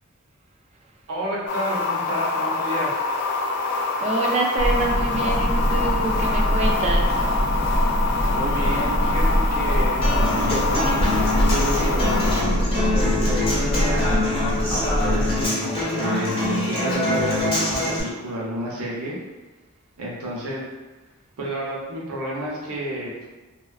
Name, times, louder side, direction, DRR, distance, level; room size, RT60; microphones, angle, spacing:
voice 1, 1.1-3.0 8.3-12.1 12.9-14.2 14.7-19.2 20.0-20.6 21.4-23.3, right 1 dB, 80° right, -4 dB, 0.7 m, -30 dB
sound 1, 1.5-12.4, left 3 dB, 55° left, 0.3 m, -25 dB
voice 2, 4.0-7.2, right 3 dB, 30° right, 0 dB, 0.3 m, -26 dB
sound 2, 4.6-15.5, equal, 70° left, 0.7 m, -23 dB
Human voice / Acoustic guitar, 10.0-18.0, left 2 dB, 25° left, 0.8 m, -25 dB
2.4 x 2.2 x 2.3 m, 1.2 s
head